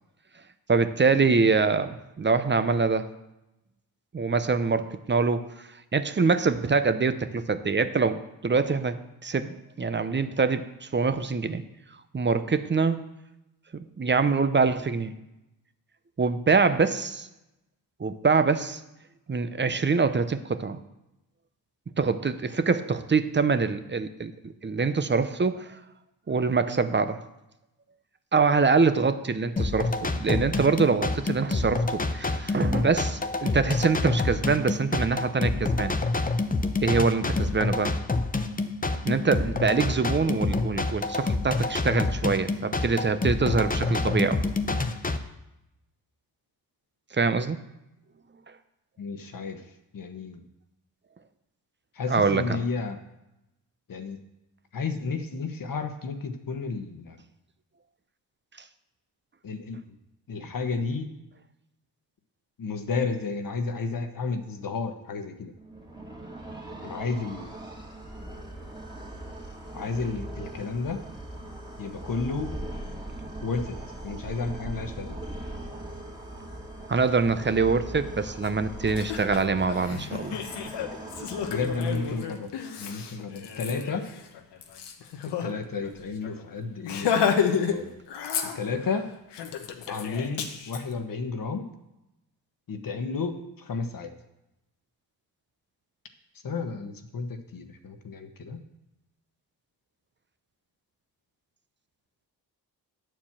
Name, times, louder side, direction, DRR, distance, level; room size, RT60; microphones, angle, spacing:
voice 1, 0.7-3.1 4.1-5.5 5.9-9.0 9.2-11.6 12.1-13.0 14.0-15.1 16.2-17.3 18.0-18.8 19.3-20.8 22.0-25.8 26.3-27.2 28.3-36.0 36.8-38.0 39.0-44.4 47.1-47.6 52.1-52.6 76.9-80.4, right 4 dB, 25° right, 11 dB, 0.7 m, -24 dB
sound 1, 29.6-45.2, left 3 dB, 20° left, 0.8 m, -27 dB
voice 2, 49.0-49.6 49.9-50.4 52.0-53.0 53.9-54.2 54.7-57.2 59.4-59.8 60.3-61.1 62.6-65.5 66.8-67.5 69.7-71.0 71.8-72.5 73.4-73.8 74.0-75.2 81.5-82.5 82.8-84.1 85.4-87.1 87.7-87.9 88.5-89.1 89.9-91.7 92.7-94.1 96.4-98.6, left 4 dB, 55° left, 7 dB, 1.2 m, -32 dB
sound 2, 65.6-82.6, right 1 dB, 10° right, 2.3 m, -40 dB
Laughter, 78.4-78.5 78.9-85.5 85.8-85.9 86.2-86.4 86.8-87.8 88.1-88.9 89.3-90.8, left 7 dB, 85° left, 1.0 m, -30 dB
9.6 x 4.6 x 7.3 m, 0.91 s
cardioid pair, 60°, 41 cm